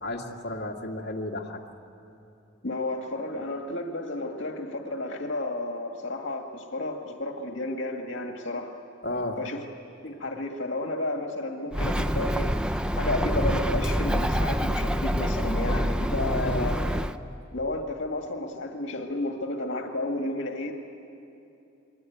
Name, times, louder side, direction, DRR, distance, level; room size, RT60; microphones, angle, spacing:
voice 1, 0.0-1.6 9.0-9.4 16.4-16.8, left 1 dB, 60° left, -2 dB, 2.2 m, -33 dB
voice 2, 2.6-8.7 9.4-9.6 10.0-12.5 13.0-16.8 17.5-20.7, left 2 dB, 85° left, 3 dB, 2.0 m, -32 dB
Bird, 11.7-17.2, equal, 5° right, 0.5 m, -26 dB
27.5 x 22.5 x 9.4 m, 2.8 s
head